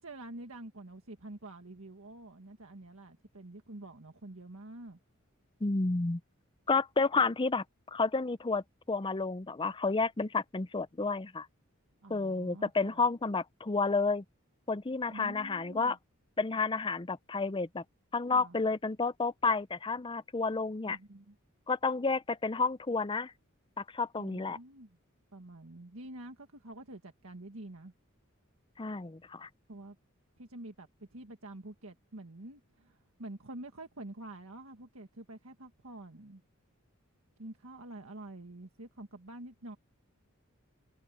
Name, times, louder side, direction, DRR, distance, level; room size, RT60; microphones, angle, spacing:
voice 1, 0.0-5.0 12.0-13.1 15.1-16.0 18.3-18.6 20.8-21.3 24.2-25.0 25.3-27.9 29.7-29.9 30.4-36.4 37.4-39.8, right 1 dB, 75° right, 1.7 m, -47 dB
voice 2, 5.6-6.2 6.7-11.5 12.1-14.2 14.7-16.0 16.4-17.8 18.1-21.0 21.7-23.3 23.8-24.6 28.8-29.5, left 4 dB, 25° left, 0.5 m, -31 dB
head